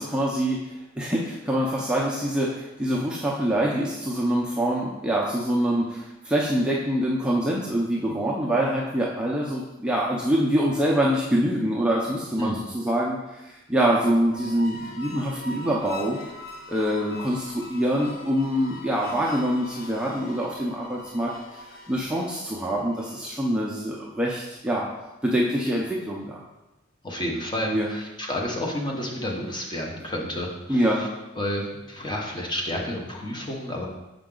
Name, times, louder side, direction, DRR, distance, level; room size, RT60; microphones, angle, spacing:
voice 1, 0.0-16.2 16.7-21.3 21.9-24.9 25.2-26.4 27.7-27.9 30.7-31.0, equal, 5° right, -4 dB, 0.5 m, -25 dB
sound 1, 14.2-23.5, left 2 dB, 50° left, 0.7 m, -42 dB
voice 2, 27.0-30.9 31.4-33.9, left 1 dB, 20° left, -1 dB, 0.9 m, -30 dB
5.8 x 5.2 x 3.8 m, 1.0 s
head